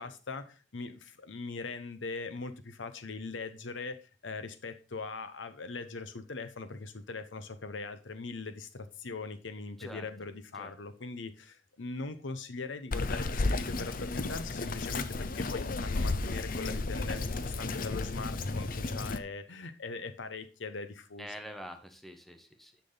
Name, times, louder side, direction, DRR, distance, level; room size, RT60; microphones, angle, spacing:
voice 1, 0.0-21.3, left 3 dB, 85° left, 11 dB, 0.9 m, -41 dB
voice 2, 9.8-10.1 10.5-10.7 21.2-22.8, equal, ahead, 6 dB, 1.1 m, -46 dB
Bird vocalization bird call bird song, 12.9-19.2, left 3 dB, 50° left, 0.7 m, -33 dB
10.0 x 6.1 x 3.9 m, 0.33 s
head